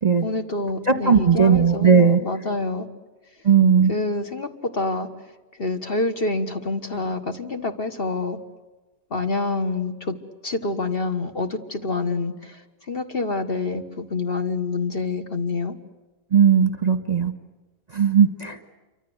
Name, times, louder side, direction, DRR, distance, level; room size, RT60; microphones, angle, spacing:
voice 1, 0.1-2.9 3.9-5.1 5.6-8.4 9.1-10.2 10.4-12.6 12.9-15.8, left 3 dB, 40° left, 7 dB, 1.6 m, -27 dB
voice 2, 0.8-2.2 3.4-3.9 16.3-17.3 17.9-18.6, right 7 dB, 30° right, 8 dB, 1.4 m, -17 dB
28.0 x 24.5 x 8.0 m, 1.2 s
omnidirectional pair, 1.5 m